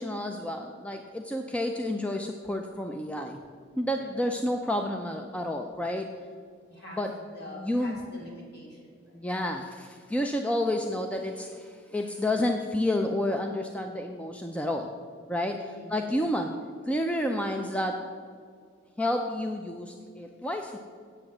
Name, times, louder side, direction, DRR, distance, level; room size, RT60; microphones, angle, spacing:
voice 1, 0.0-3.4 3.8-6.1 7.0-7.1 7.6-8.0 9.1-14.9 15.3-15.6 15.9-16.5 16.8-18.0 19.0-20.8, left 1 dB, 5° left, 4 dB, 0.4 m, -30 dB
voice 2, 3.9-4.7 6.7-9.2 15.5-16.4, left 1 dB, 50° left, -3 dB, 3.0 m, -47 dB
7.9 x 7.8 x 7.3 m, 2.2 s
head